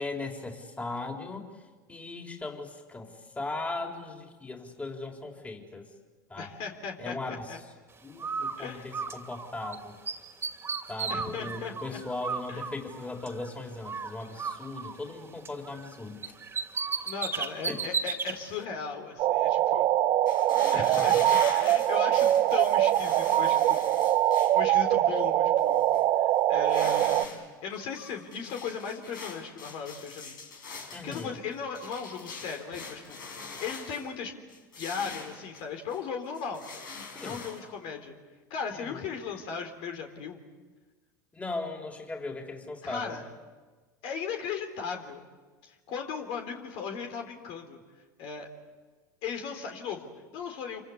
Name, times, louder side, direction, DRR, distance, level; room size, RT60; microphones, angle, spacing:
voice 1, 0.0-1.5 1.9-5.9 6.3-6.5 7.0-7.6 8.0-9.9 10.9-16.3 17.7-17.8 20.7-21.0 30.9-31.4 37.1-37.4 38.7-39.0 41.3-43.2, left 3 dB, 15° left, 2 dB, 4.3 m, -38 dB
voice 2, 6.4-7.6 8.6-8.9 11.1-12.0 12.5-12.6 17.0-19.9 20.7-23.8 24.5-25.9 26.2-27.3 27.6-30.4 30.7-34.3 34.8-36.6 37.2-38.1 38.5-40.4 42.8-43.3 44.0-45.2 45.6-47.8 48.2-48.5 49.2-50.8, left 6 dB, 60° left, 4 dB, 3.8 m, -37 dB
Bird, 8.2-9.8 10.0-13.5 13.8-15.9 16.2-18.3, right 5 dB, 20° right, 2.8 m, -35 dB
sound 1, 19.2-27.2, right 12 dB, 50° right, 1.3 m, -23 dB
sound 2, 20.3-24.6 25.2-25.3 25.6-26.0 26.6-27.4 27.7-34.1 34.5-36.0 36.3-37.6, left 4 dB, 85° left, 5.3 m, -43 dB
27.5 x 25.0 x 8.3 m, 1.3 s
hypercardioid pair, 90°, 10 cm